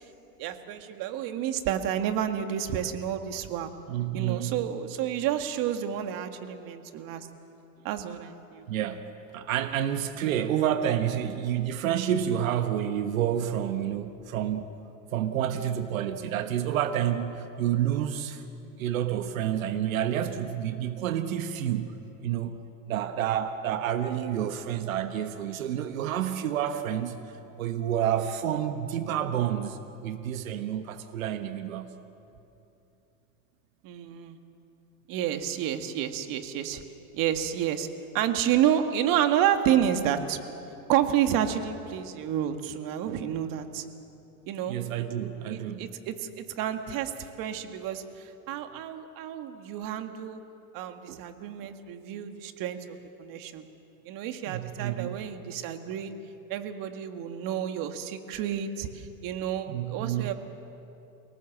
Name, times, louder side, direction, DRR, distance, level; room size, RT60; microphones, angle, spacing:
voice 1, 0.4-3.7 4.1-7.3 7.8-8.7 33.8-34.4 35.1-36.8 37.1-37.9 38.1-40.4 40.9-43.8 44.5-44.8 45.5-48.0 48.5-50.4 50.7-53.6 54.1-56.1 56.5-60.3, right 10 dB, 55° right, 7 dB, 2.0 m, -30 dB
voice 2, 3.9-4.6 8.7-9.1 9.3-14.7 15.1-18.4 18.8-31.9 44.7-45.9 51.1-51.2 54.4-55.2 59.7-60.3, right 10 dB, 90° right, 8 dB, 1.3 m, -29 dB
29.0 x 18.5 x 7.4 m, 2.8 s
supercardioid pair, 105°, 40 cm